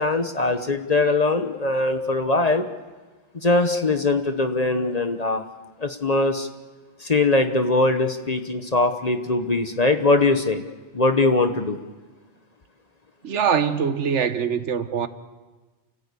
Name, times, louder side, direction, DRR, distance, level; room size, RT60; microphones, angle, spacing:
voice 1, 0.0-2.6 3.4-5.4 5.8-6.5 7.0-10.6 10.9-11.8, left 2 dB, 35° left, 1.1 m, -21 dB
voice 2, 13.2-15.1, right 7 dB, 80° right, 1.3 m, -23 dB
30.0 x 14.5 x 8.3 m
omnidirectional pair, 1.2 m